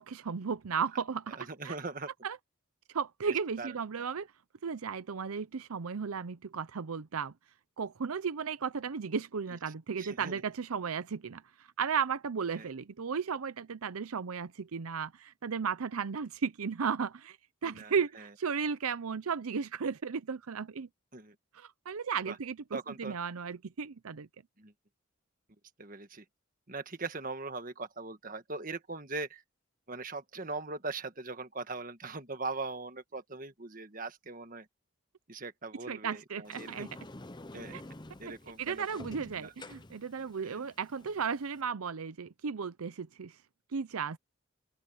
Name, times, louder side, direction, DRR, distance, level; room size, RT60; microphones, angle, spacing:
voice 1, 0.0-1.4 1.6-1.8 2.2-2.4 2.9-4.3 4.6-7.3 7.8-11.4 11.8-17.4 17.6-20.9 21.5-24.3 35.9-36.9 37.7-37.8 38.6-43.3 43.7-44.2, right 6 dB, 90° right, 0.6 m, -35 dB
voice 2, 1.3-2.1 3.3-3.7 10.0-10.4 12.6-12.7 17.6-18.3 21.1-21.3 22.2-22.4 22.7-23.2 24.6-24.7 25.8-26.2 26.7-29.4 29.9-34.7 35.3-36.9 37.5-37.8 38.2-38.8 39.3-39.5 40.4-40.7, right 3 dB, 40° right, 1.6 m, -40 dB
Sliding door, 36.4-41.6, left 2 dB, 20° left, 0.8 m, -49 dB
open air
head